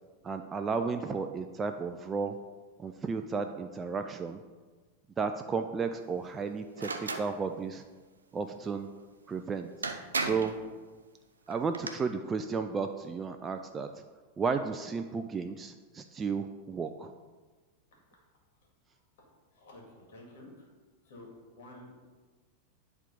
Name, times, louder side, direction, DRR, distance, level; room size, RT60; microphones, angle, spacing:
voice 1, 0.2-2.3 2.8-4.4 5.2-7.8 8.3-8.9 9.3-9.7 10.2-10.5 11.5-13.9 14.4-17.1, right 5 dB, 20° right, 6 dB, 0.3 m, -33 dB
sound 1, 6.8-7.3 9.3-9.4 9.8-10.6 11.5-11.9, right 3 dB, 75° right, 0.6 m, -34 dB
voice 2, 19.5-20.6 21.0-21.3 21.6-22.1, left 1 dB, 55° left, -1 dB, 2.2 m, -50 dB
9.8 x 3.5 x 5.2 m, 1.4 s
figure-of-eight pair, 90°, 0 cm